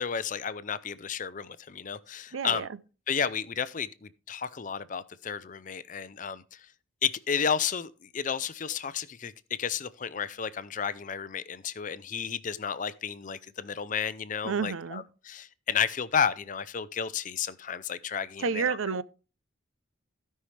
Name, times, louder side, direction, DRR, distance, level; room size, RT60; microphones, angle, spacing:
voice 1, 0.0-2.7 3.1-6.6 7.0-18.8, left 7 dB, 40° left, 0.5 m, -32 dB
voice 2, 2.3-2.8 14.4-15.0 18.4-19.0, right 5 dB, 85° right, 0.5 m, -30 dB
16.0 x 5.6 x 3.3 m
head